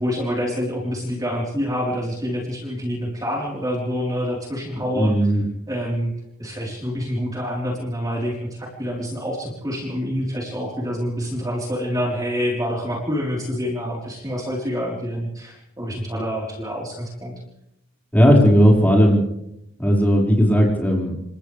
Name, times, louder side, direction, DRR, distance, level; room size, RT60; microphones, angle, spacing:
voice 1, 0.0-5.1 5.7-6.1 6.4-17.3, equal, 15° right, -3 dB, 4.3 m, -27 dB
voice 2, 4.9-5.4 18.1-19.2 19.8-21.2, equal, 10° left, -2 dB, 5.4 m, -16 dB
30.0 x 27.0 x 3.5 m, 0.82 s
head